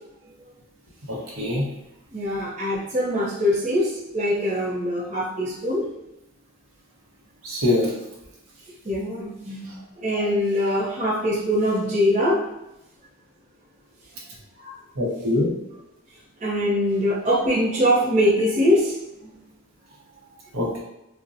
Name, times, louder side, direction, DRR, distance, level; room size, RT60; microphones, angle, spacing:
voice 1, 1.1-1.7 7.4-7.9 15.0-15.5 20.5-20.8, left 2 dB, 85° right, -3 dB, 0.9 m, -23 dB
voice 2, 2.1-5.8 8.8-9.7 10.0-12.4 14.6-14.7 16.4-19.0 19.2-19.3, equal, 35° right, -6 dB, 0.6 m, -23 dB
4.0 x 2.1 x 2.5 m, 0.90 s
head